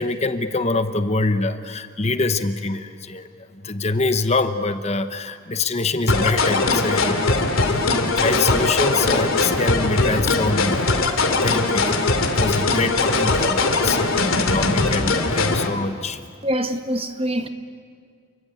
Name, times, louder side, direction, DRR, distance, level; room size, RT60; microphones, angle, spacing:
voice 1, 0.0-11.0 11.4-16.2, left 3 dB, 30° left, 1.0 m, -25 dB
sound 1, 6.1-15.7, left 3 dB, 80° left, 2.8 m, -20 dB
voice 2, 16.4-17.5, equal, 30° right, 1.4 m, -24 dB
29.5 x 23.0 x 8.6 m
head